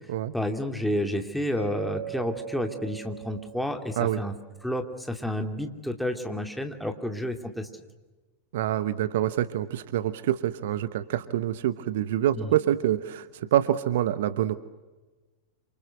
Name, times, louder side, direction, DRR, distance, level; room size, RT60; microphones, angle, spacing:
voice 1, 0.3-4.3 4.6-7.7 12.3-12.5, left 1 dB, ahead, 5 dB, 2.7 m, -30 dB
Mallet percussion, 1.6-4.6, right 7 dB, 80° left, 3.2 m, -40 dB
voice 2, 8.5-13.3 13.5-14.6, right 12 dB, 55° right, 14 dB, 1.0 m, -26 dB
28.0 x 26.5 x 8.0 m, 1.2 s
figure-of-eight pair, 90°, 0 cm